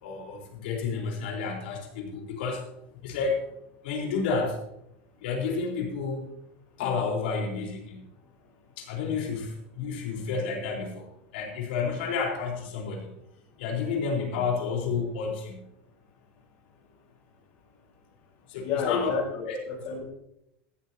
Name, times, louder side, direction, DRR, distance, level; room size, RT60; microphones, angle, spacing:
voice 1, 0.0-2.7 3.0-3.4 3.8-4.6 5.2-6.3 6.8-8.1 8.8-13.1 13.6-15.7 18.5-19.2 19.5-19.6, left 5 dB, 80° left, -1 dB, 4.2 m, -30 dB
voice 2, 18.6-20.1, left 6 dB, 45° left, -1 dB, 4.3 m, -30 dB
14.5 x 12.5 x 2.9 m, 0.80 s
supercardioid pair, 160°, 5 cm